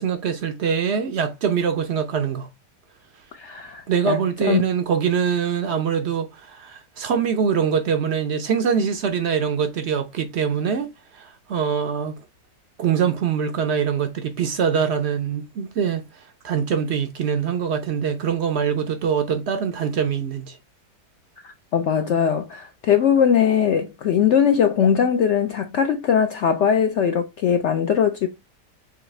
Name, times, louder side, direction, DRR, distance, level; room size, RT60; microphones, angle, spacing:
voice 1, 0.0-2.5 3.9-12.2 12.8-16.0 16.4-20.6, right 7 dB, 75° right, 0.6 m, -23 dB
voice 2, 3.4-4.2 4.4-4.6 21.4-28.3, left 8 dB, 85° left, 0.6 m, -20 dB
7.0 x 2.4 x 3.2 m
omnidirectional pair, 1.8 m